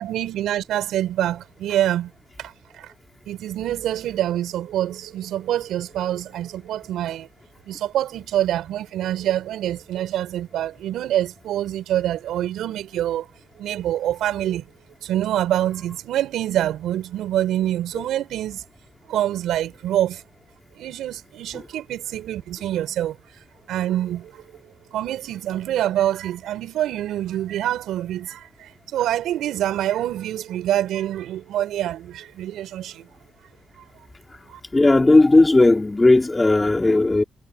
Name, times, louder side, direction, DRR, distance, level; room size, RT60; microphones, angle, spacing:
voice 1, 0.0-2.1 2.4-2.9 3.3-7.3 7.7-13.3 13.6-14.7 15.0-18.6 19.1-20.2 20.8-23.2 23.7-24.4 24.9-33.1 34.5-34.6, right 12 dB, 80° right, 6.2 m, -26 dB
voice 2, 34.7-37.2, left 2 dB, 20° left, 3.5 m, -15 dB
cardioid pair, 90°, 0 cm